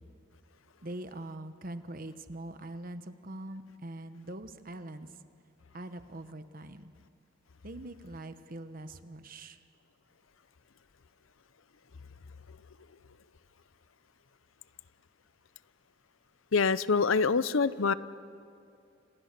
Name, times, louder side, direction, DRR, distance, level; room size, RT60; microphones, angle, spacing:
voice 1, 0.8-5.1 5.7-6.9 7.6-9.6, right 1 dB, 45° right, 1.1 m, -43 dB
voice 2, 16.5-17.9, left 5 dB, 85° left, 0.7 m, -25 dB
30.0 x 28.0 x 6.8 m
head